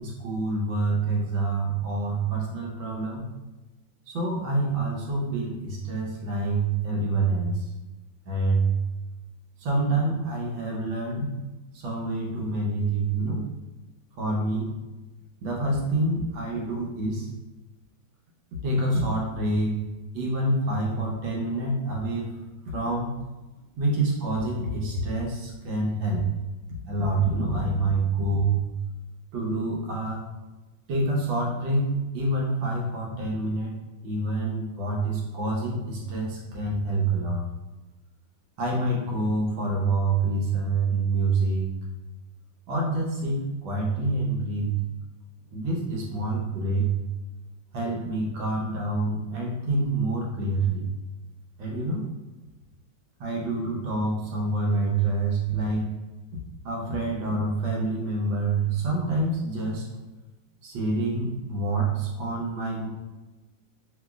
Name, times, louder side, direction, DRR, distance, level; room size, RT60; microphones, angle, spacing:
voice 1, 0.0-3.3 4.1-7.7 8.3-8.7 9.6-11.4 11.7-13.5 14.2-14.7 15.4-17.3 18.6-19.9 20.1-22.3 22.7-23.2 23.8-26.3 26.9-28.6 29.3-30.3 30.9-33.8 34.0-37.4 38.6-41.8 42.7-44.7 45.5-46.9 47.7-50.9 51.6-52.1 53.2-55.9 56.7-59.9 60.6-62.9, right 2 dB, 80° right, -2 dB, 1.6 m, -27 dB
5.2 x 3.0 x 2.3 m, 1.1 s
omnidirectional pair, 2.1 m